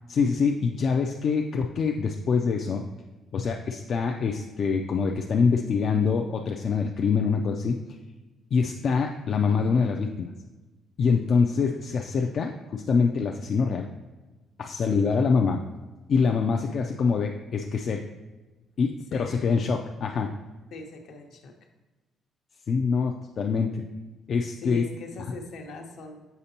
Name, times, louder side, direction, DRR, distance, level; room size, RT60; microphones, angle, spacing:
voice 1, 0.1-2.8 3.3-7.8 8.5-10.3 11.0-13.9 14.6-15.6 16.1-18.0 18.8-20.3 22.7-23.8 24.3-24.8, left 5 dB, 45° left, 2 dB, 0.3 m, -25 dB
voice 2, 20.7-21.5 24.6-26.3, left 3 dB, 65° left, 3 dB, 0.8 m, -40 dB
6.7 x 5.0 x 2.8 m, 1.2 s
cardioid pair, 140°, 0 cm